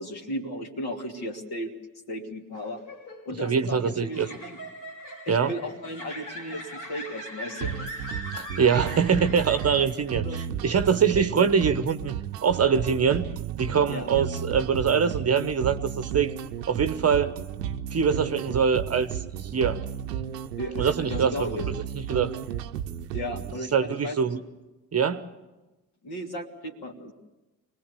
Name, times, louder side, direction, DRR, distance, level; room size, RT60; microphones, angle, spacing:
voice 1, 0.0-1.7 2.1-2.8 3.2-4.6 5.3-7.9 10.2-10.5 11.1-11.2 13.9-14.1 20.6-21.6 23.1-24.2 26.0-27.1, equal, 50° left, 2 dB, 3.1 m, -35 dB
sound 1, 2.5-10.1, equal, 75° left, 5.2 m, -41 dB
voice 2, 3.4-4.3 5.3-5.5 8.4-12.1 12.4-13.3 13.6-16.3 16.7-17.3 17.9-19.8 20.8-21.5 22.1-22.3 23.7-24.4 24.9-25.3, right 6 dB, 30° right, 10 dB, 1.1 m, -24 dB
sound 2, 7.6-23.6, right 9 dB, 75° right, 0.9 m, -33 dB
25.0 x 19.0 x 7.0 m, 1.1 s
figure-of-eight pair, 45°, 48 cm